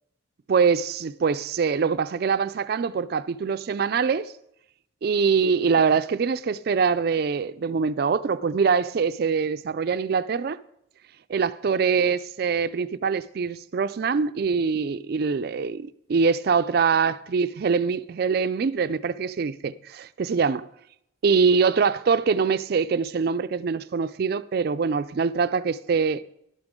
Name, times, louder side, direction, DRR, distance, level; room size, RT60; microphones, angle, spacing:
voice 1, 0.5-4.3 5.0-10.6 11.3-20.6 21.2-26.2, right 5 dB, 50° right, 0.3 m, -24 dB
11.0 x 8.8 x 3.6 m
head